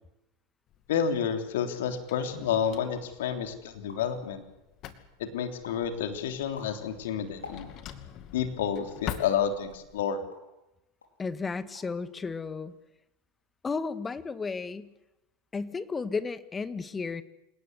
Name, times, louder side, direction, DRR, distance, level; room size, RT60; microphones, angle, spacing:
Drawer open or close, 0.7-10.0, left 10 dB, 45° left, 2.5 m, -45 dB
voice 1, 0.9-4.4 5.2-7.7 8.3-10.2, left 8 dB, 70° left, 6 dB, 3.3 m, -30 dB
sound 1, 2.6-2.9 3.5-3.6 3.7-4.3 4.7-5.2 5.6-5.9 6.3-8.0 8.8-9.1 9.7-10.6 11.0-11.2 11.5-12.0 12.3-12.8, left 4 dB, 85° left, 4.8 m, -49 dB
voice 2, 11.2-12.7 13.6-14.9 15.5-17.2, left 4 dB, 20° left, 12 dB, 1.7 m, -33 dB
28.0 x 18.0 x 8.1 m, 0.94 s
hypercardioid pair, 85°, 0 cm